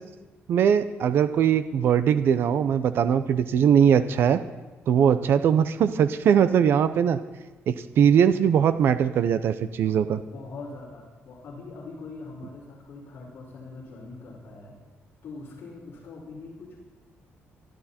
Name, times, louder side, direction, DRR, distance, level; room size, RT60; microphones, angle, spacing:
voice 1, 0.5-4.4 4.9-7.2 7.7-10.2, right 8 dB, 55° right, 12 dB, 0.7 m, -21 dB
voice 2, 10.3-14.8 15.2-16.8, left 3 dB, 50° left, -9 dB, 5.2 m, -42 dB
23.5 x 12.5 x 4.4 m, 1.1 s
cardioid pair, 175°, 5 cm